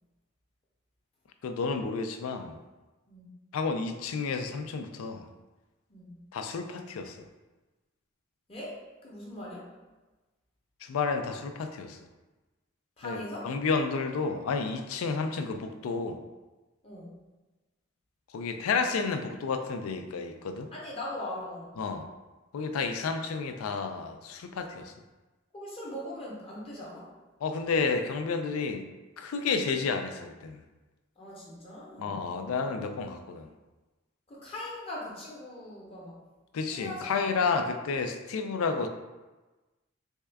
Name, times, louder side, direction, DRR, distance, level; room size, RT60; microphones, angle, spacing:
voice 1, 1.4-2.6 3.5-5.2 6.3-7.2 10.8-12.0 13.0-16.2 18.3-20.7 21.8-22.1 22.5-24.9 27.4-28.9 29.2-30.6 32.0-33.5 36.5-38.9, left 4 dB, 90° left, 6 dB, 0.4 m, -31 dB
voice 2, 5.9-6.2 8.5-9.7 13.0-13.5 16.8-17.1 20.7-21.8 25.5-27.1 31.2-32.1 34.3-36.2 36.7-37.3, left 1 dB, 30° left, -4 dB, 0.7 m, -40 dB
3.5 x 2.2 x 3.4 m, 1.2 s
head